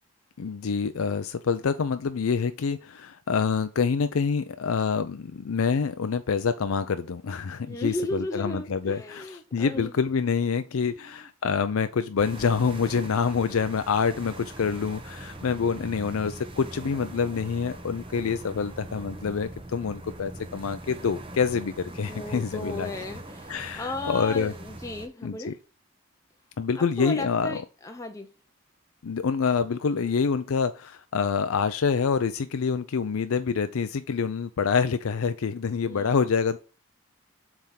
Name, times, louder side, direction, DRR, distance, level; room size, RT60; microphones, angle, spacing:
voice 1, 0.4-9.3 9.5-22.9 23.5-24.5 25.2-25.5 26.6-27.6 29.0-36.6, left 5 dB, 80° left, 10 dB, 0.5 m, -26 dB
voice 2, 7.6-10.0 11.0-11.1 22.1-23.5 23.8-25.6 26.8-28.3 35.9-36.1, left 1 dB, 15° left, 4 dB, 0.6 m, -35 dB
sound 1, 12.2-25.1, right 1 dB, 25° right, 0.9 m, -42 dB
7.5 x 3.6 x 5.7 m, 0.33 s
head